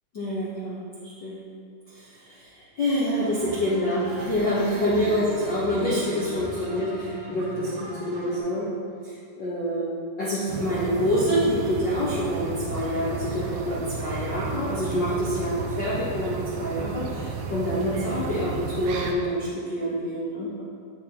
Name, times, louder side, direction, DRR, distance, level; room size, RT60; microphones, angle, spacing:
voice 1, 0.1-1.4 1.9-8.7 9.0-20.6, equal, 65° left, -9 dB, 1.1 m, -27 dB
sound 1, 3.0-8.4, right 1 dB, 55° right, 2.5 m, -38 dB
sound 2, 10.5-19.1, right 4 dB, 80° right, 1.8 m, -33 dB
9.1 x 6.8 x 3.0 m, 2.3 s
omnidirectional pair, 3.9 m